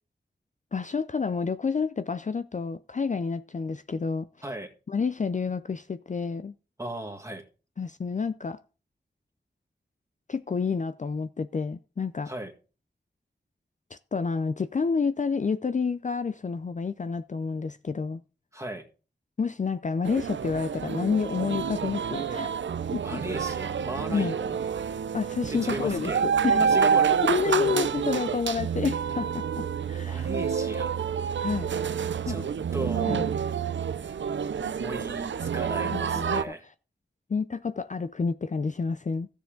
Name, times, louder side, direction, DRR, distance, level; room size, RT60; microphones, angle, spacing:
voice 1, 0.7-4.3 4.9-6.5 7.8-8.6 10.3-12.3 13.9-18.2 19.4-22.6 22.9-23.2 24.1-24.4 25.1-26.7 27.2-30.3 31.4-31.7 32.3-32.4 33.1-33.3 35.8-36.4 37.3-39.3, left 5 dB, 40° left, 0.4 m, -29 dB
voice 2, 6.8-7.4 12.3-12.5 18.5-18.9 23.0-24.6 25.5-26.2 26.6-27.2 30.1-31.0 32.2-32.5 32.7-33.3 34.6-36.6, right 1 dB, 15° right, 1.8 m, -36 dB
sound 1, 20.0-36.4, right 7 dB, 85° right, 0.4 m, -28 dB
13.5 x 7.0 x 3.8 m
wide cardioid pair, 55°, 19 cm